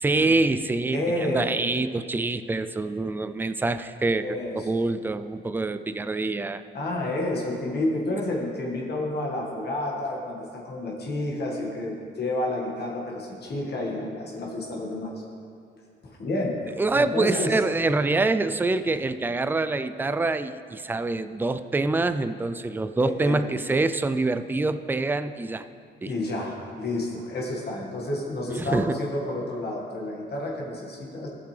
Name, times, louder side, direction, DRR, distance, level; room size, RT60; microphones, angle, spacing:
voice 1, 0.0-6.6 16.8-25.6 26.0-26.1 28.5-29.0, right 3 dB, 10° right, 11 dB, 0.3 m, -25 dB
voice 2, 0.9-1.5 4.2-4.7 6.7-15.1 16.0-16.6 16.9-17.5 23.0-23.5 26.1-31.3, left 1 dB, 55° left, -2 dB, 1.8 m, -30 dB
15.0 x 5.9 x 3.3 m, 2.3 s
cardioid pair, 90°, 20 cm